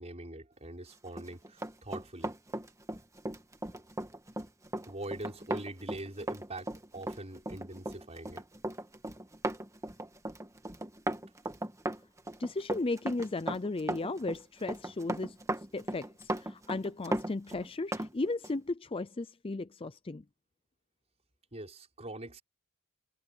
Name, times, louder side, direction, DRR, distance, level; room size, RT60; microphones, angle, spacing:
voice 1, 0.0-2.3 4.9-8.5 21.5-22.4, right 1 dB, 30° right, 6.0 m, -43 dB
Run, 1.1-18.1 18.4-18.6, right 1 dB, 15° right, 1.5 m, -37 dB
voice 2, 12.4-15.4 15.7-20.2, left 2 dB, 25° left, 0.5 m, -35 dB
head